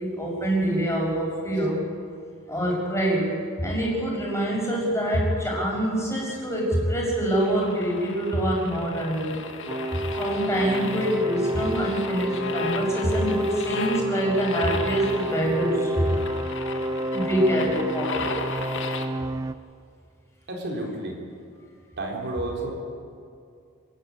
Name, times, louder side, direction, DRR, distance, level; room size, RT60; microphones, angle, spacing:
voice 1, 0.0-1.8 2.5-3.3 3.6-9.5 10.2-16.1 17.1-18.3, right 1 dB, 15° left, -3 dB, 6.4 m, -25 dB
sound 1, 7.3-19.1, left 4 dB, 65° left, 1.8 m, -36 dB
sound 2, 9.7-19.5, right 1 dB, 15° right, 0.5 m, -29 dB
voice 2, 20.5-21.2 22.0-22.7, right 2 dB, 55° right, 0 dB, 3.9 m, -31 dB
27.0 x 13.5 x 9.6 m, 2.4 s
head